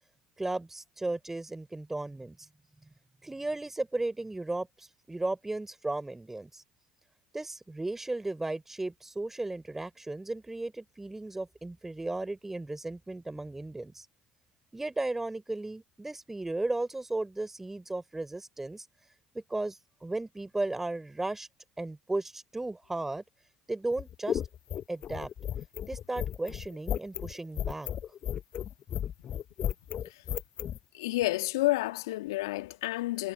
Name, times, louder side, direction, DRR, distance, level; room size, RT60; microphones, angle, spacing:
voice 1, 0.4-2.4 3.2-6.6 7.3-14.0 14.7-18.9 19.3-21.5 21.8-23.2 23.7-24.4 24.9-25.3 25.9-27.9, right 2 dB, 15° right, 4.6 m, -35 dB
sound 1, 23.9-30.8, left 10 dB, 45° left, 1.1 m, -34 dB
voice 2, 30.9-33.3, left 18 dB, 75° left, 2.1 m, -30 dB
hypercardioid pair, 65°, 2 cm